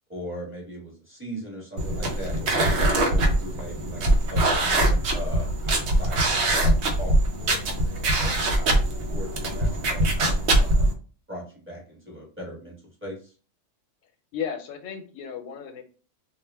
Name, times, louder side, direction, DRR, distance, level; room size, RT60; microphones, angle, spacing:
voice 1, 0.1-4.0 4.3-6.3 6.6-7.1 7.4-7.6 8.2-8.8 9.1-11.0 11.3-12.7 13.0-13.3, equal, 10° right, -5 dB, 0.9 m, -39 dB
sound 1, 1.8-10.9, right 1 dB, 65° right, 0.8 m, -23 dB
voice 2, 14.3-15.8, left 8 dB, 85° left, 5 dB, 1.0 m, -34 dB
2.3 x 2.1 x 3.3 m, 0.38 s
omnidirectional pair, 1.3 m